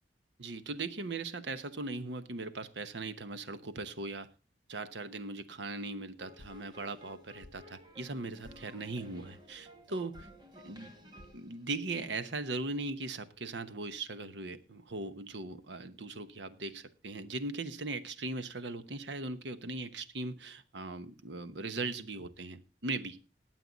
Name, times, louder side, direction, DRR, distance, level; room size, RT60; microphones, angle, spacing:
voice 1, 0.4-4.3 4.7-10.2 10.6-10.9 11.3-23.2, right 3 dB, 75° right, 12 dB, 1.0 m, -39 dB
sound 1, 6.2-12.5, left 1 dB, 25° right, 2.0 m, -54 dB
19.0 x 7.7 x 4.0 m, 0.32 s
head